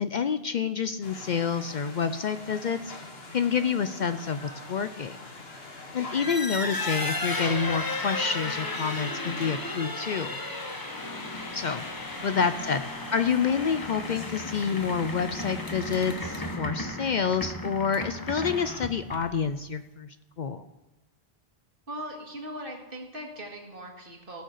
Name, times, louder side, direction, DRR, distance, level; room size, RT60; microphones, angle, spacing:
voice 1, 0.0-2.9 3.3-5.2 5.9-10.4 11.5-11.8 12.2-20.6, left 6 dB, 55° left, 11 dB, 0.6 m, -28 dB
sound 1, 1.0-16.6, left 2 dB, 75° left, 1.8 m, -44 dB
sound 2, 6.0-19.5, left 2 dB, 20° left, 0.9 m, -34 dB
voice 2, 6.0-6.4 12.1-12.6 21.9-24.4, right 1 dB, 60° right, 1 dB, 2.2 m, -40 dB
16.5 x 6.5 x 6.5 m, 1.0 s
omnidirectional pair, 1.0 m